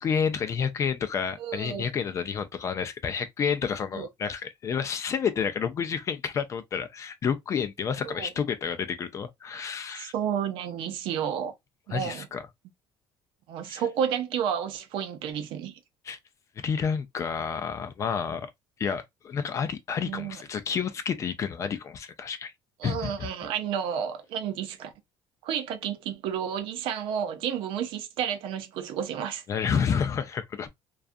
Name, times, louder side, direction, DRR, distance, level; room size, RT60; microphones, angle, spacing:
voice 1, 0.0-10.1 11.9-12.4 13.6-13.8 16.1-16.2 16.6-18.5 18.8-22.5 22.8-23.3 29.5-30.7, left 7 dB, 35° left, 0.4 m, -30 dB
voice 2, 1.4-1.9 3.9-4.1 8.0-8.3 9.9-11.5 11.9-12.3 13.5-15.8 20.0-20.4 22.8-24.9 25.4-29.4, right 8 dB, 70° right, 0.6 m, -31 dB
2.4 x 2.3 x 2.5 m
cardioid pair, 135°, 9 cm